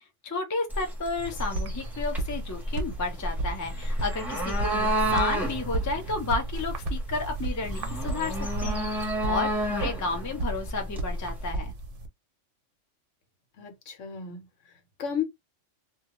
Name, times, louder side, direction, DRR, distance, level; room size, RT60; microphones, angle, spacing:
voice 1, 0.2-11.7, left 3 dB, 25° left, 0.4 m, -32 dB
sound 1, 0.7-11.5, right 1 dB, ahead, 0.7 m, -31 dB
sound 2, 1.2-12.1, right 2 dB, 55° right, 0.7 m, -34 dB
voice 2, 13.6-15.2, left 7 dB, 80° left, 1.1 m, -34 dB
2.3 x 2.2 x 2.9 m
omnidirectional pair, 1.3 m